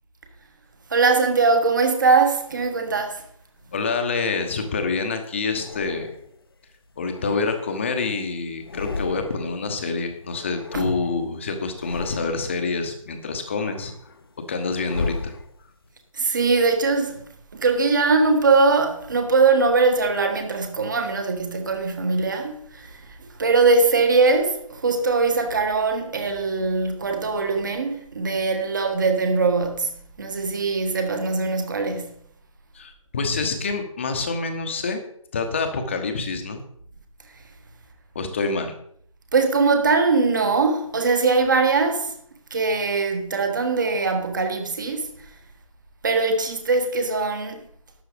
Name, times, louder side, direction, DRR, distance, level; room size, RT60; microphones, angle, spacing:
voice 1, 0.9-3.2 10.7-10.9 16.1-17.2 17.5-32.2 39.3-42.1 42.5-45.3 46.0-47.6, right 4 dB, 35° right, 1.6 m, -21 dB
sound 1, 3.6-4.9 5.5-6.5 6.9-8.2 8.5-9.6 9.9-11.3 11.7-12.7 13.2-15.9, left 3 dB, 45° left, 1.0 m, -36 dB
voice 2, 3.7-6.1 7.0-13.9 14.5-15.3 32.7-35.0 35.3-36.6 38.1-38.7, left 4 dB, 20° left, 1.1 m, -27 dB
12.0 x 8.1 x 5.1 m
figure-of-eight pair, 155°, 17 cm